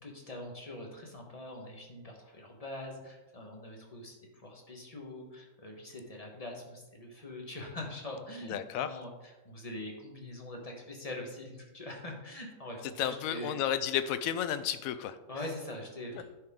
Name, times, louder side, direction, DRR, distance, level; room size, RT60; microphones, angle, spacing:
voice 1, 0.0-13.6 15.3-16.2, left 1 dB, 30° left, 1 dB, 1.2 m, -43 dB
voice 2, 8.5-8.9 13.0-15.2 16.1-16.2, left 10 dB, 85° left, 12 dB, 1.0 m, -32 dB
10.5 x 4.7 x 3.6 m, 1.1 s
omnidirectional pair, 1.4 m